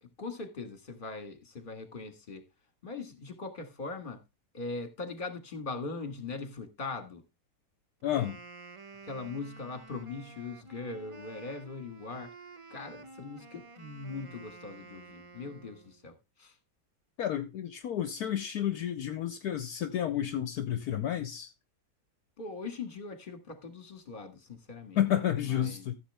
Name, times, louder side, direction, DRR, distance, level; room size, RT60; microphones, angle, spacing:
voice 1, 0.0-2.4 2.8-4.2 4.5-7.2 9.0-12.3 12.7-16.5 22.4-25.0 25.4-25.9, left 3 dB, 30° left, 1.9 m, -41 dB
voice 2, 8.0-8.4 17.2-21.5 25.0-26.0, left 10 dB, 70° left, 1.2 m, -31 dB
Wind instrument woodwind instrument, 8.0-16.0, right 3 dB, 55° right, 0.3 m, -51 dB
14.5 x 6.9 x 3.5 m
omnidirectional pair, 1.8 m